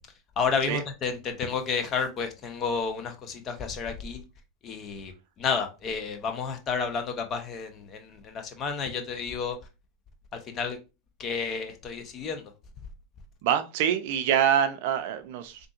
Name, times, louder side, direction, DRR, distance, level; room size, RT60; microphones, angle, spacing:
voice 1, 0.4-4.2 4.6-5.1 5.4-9.6 10.3-10.8 11.2-12.4, left 5 dB, 40° left, 0.8 m, -31 dB
voice 2, 13.4-15.7, right 9 dB, 65° right, 0.4 m, -25 dB
3.6 x 2.6 x 2.4 m
hypercardioid pair, 85°, 0 cm